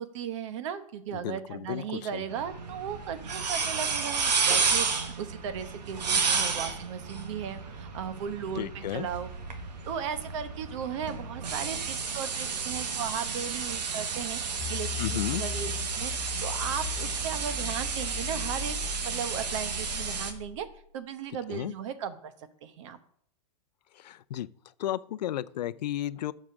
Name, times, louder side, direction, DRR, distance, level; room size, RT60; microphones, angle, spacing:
voice 1, 0.0-9.3 9.9-20.7 20.9-22.3 22.6-23.0, right 8 dB, 50° right, 1.0 m, -36 dB
voice 2, 1.1-2.2 8.5-9.1 15.0-15.4 21.5-21.7 23.9-24.5 24.8-26.3, left 12 dB, 85° left, 0.5 m, -33 dB
sound 1, 2.3-20.3, right 5 dB, 90° right, 1.6 m, -32 dB
sound 2, 14.6-20.8, left 8 dB, 25° left, 0.6 m, -39 dB
7.4 x 5.0 x 6.0 m
supercardioid pair, 165°, 21 cm